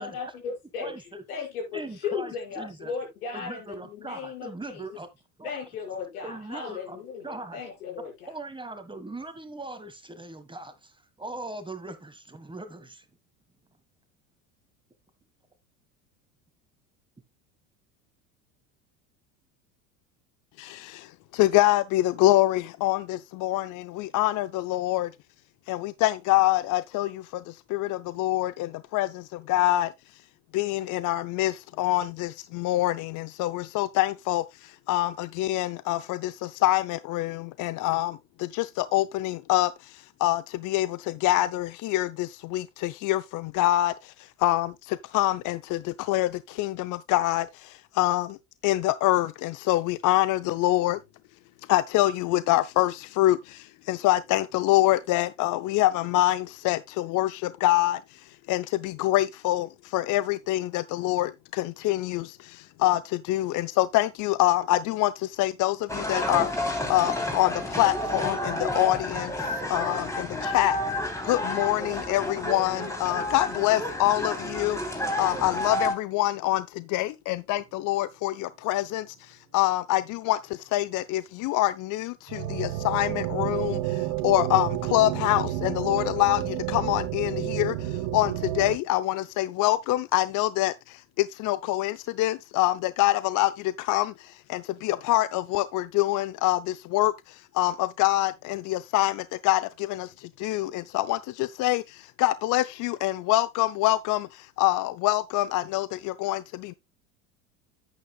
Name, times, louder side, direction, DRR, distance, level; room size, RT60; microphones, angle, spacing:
voice 1, 0.0-4.8 5.4-8.1, left 6 dB, 85° left, 6.1 m, -36 dB
voice 2, 0.8-1.2 1.7-2.9 3.3-5.1 5.4-5.5 6.2-7.6 8.3-13.0, right 2 dB, 10° right, 1.6 m, -40 dB
voice 3, 20.6-25.1 25.7-29.9 30.5-48.4 48.6-51.0 51.7-58.2 58.5-70.8 71.2-74.8 75.2-106.7, left 16 dB, 45° left, 0.5 m, -26 dB
sound 1, 65.9-75.9, left 1 dB, 5° left, 3.4 m, -30 dB
sound 2, 82.3-88.8, right 14 dB, 65° right, 1.6 m, -30 dB
10.5 x 9.4 x 2.3 m
hypercardioid pair, 90°, 43 cm